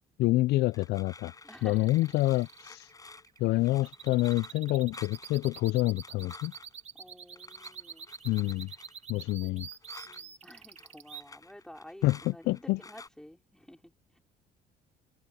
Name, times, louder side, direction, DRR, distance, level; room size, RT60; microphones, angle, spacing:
voice 1, 0.2-1.3 1.6-2.9 3.4-6.5 8.2-8.7 9.1-9.7 12.0-12.8, left 18 dB, 75° left, 0.4 m, -27 dB
sound 1, 0.7-6.8 7.4-10.2 10.5-13.1, left 3 dB, 20° left, 6.0 m, -52 dB
voice 2, 1.4-2.2 6.9-8.1 10.0-14.2, left 1 dB, 5° left, 5.2 m, -51 dB
sound 2, 1.5-11.2, right 7 dB, 40° right, 2.0 m, -47 dB
cardioid pair, 110°, 17 cm